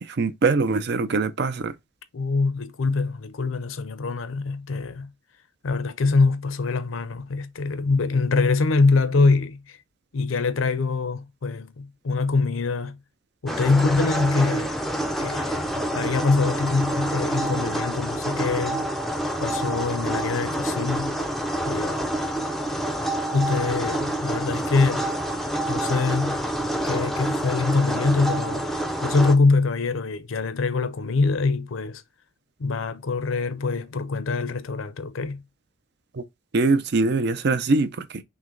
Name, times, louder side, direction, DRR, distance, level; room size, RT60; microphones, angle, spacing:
voice 1, 0.0-1.7 36.1-36.2 36.5-38.2, right 3 dB, 55° right, 0.5 m, -23 dB
voice 2, 2.1-5.1 5.6-9.8 10.1-13.0 13.4-14.7 15.2-18.9 19.4-21.2 21.7-22.1 23.3-25.1 25.7-26.4 26.8-32.0 32.6-35.4, left 3 dB, 80° left, 0.6 m, -24 dB
sound 1, 13.5-29.4, right 1 dB, ahead, 0.5 m, -27 dB
5.9 x 2.2 x 3.8 m
head